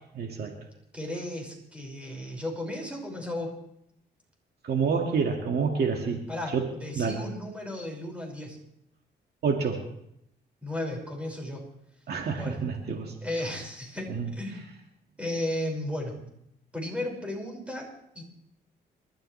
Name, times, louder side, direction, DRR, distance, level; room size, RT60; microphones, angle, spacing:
voice 1, 0.2-0.6 4.6-6.2 6.5-6.6 6.9-7.2 9.4-9.8 12.1-13.1 14.1-14.3, right 5 dB, 65° right, 2 dB, 2.1 m, -28 dB
voice 2, 0.9-3.6 6.3-8.6 10.6-11.6 12.3-12.6 13.2-14.7 15.2-16.2 16.7-18.2, left 1 dB, 5° right, 0 dB, 5.6 m, -34 dB
27.5 x 13.0 x 3.3 m, 0.76 s
cardioid pair, 100°, 18 cm